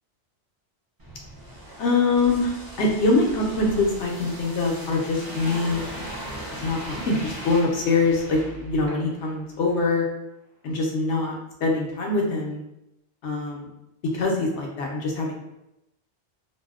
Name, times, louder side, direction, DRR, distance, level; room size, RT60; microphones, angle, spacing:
sound 1, 1.0-9.3 9.7-9.8, equal, 35° right, 0.3 m, -38 dB
voice 1, 1.8-5.8 6.5-10.0 10.6-11.3 11.6-12.6 13.2-13.7 14.1-15.3, left 3 dB, 85° left, -1 dB, 0.9 m, -24 dB
2.6 x 2.0 x 2.3 m, 0.87 s
omnidirectional pair, 1.2 m